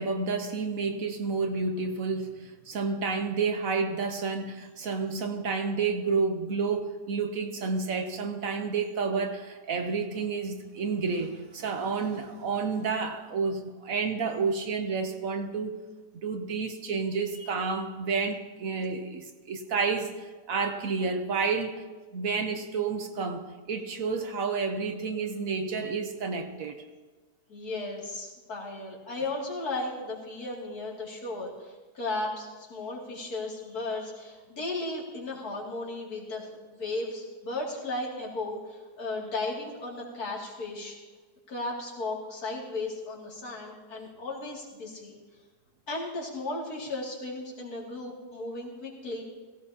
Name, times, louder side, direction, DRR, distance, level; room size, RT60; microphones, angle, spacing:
voice 1, 0.0-15.8 16.2-21.8 22.1-26.8, right 4 dB, 60° right, 6 dB, 1.3 m, -30 dB
voice 2, 27.5-40.9 41.5-45.2 45.9-49.2, left 2 dB, 70° left, -4 dB, 3.1 m, -35 dB
16.5 x 16.5 x 2.8 m, 1.3 s
omnidirectional pair, 1.7 m